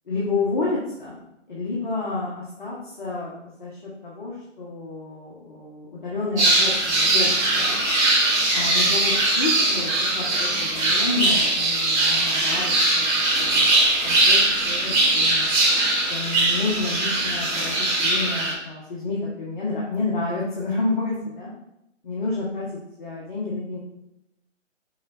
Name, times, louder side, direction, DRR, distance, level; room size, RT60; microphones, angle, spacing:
voice 1, 0.1-1.2 1.5-7.8 8.5-15.5 16.1-21.5 22.0-23.8, left 3 dB, 40° left, -5 dB, 1.4 m, -30 dB
sound 1, 6.4-18.5, right 2 dB, 10° right, 1.4 m, -21 dB
6.5 x 3.6 x 4.2 m, 0.83 s
figure-of-eight pair, 150°, 37 cm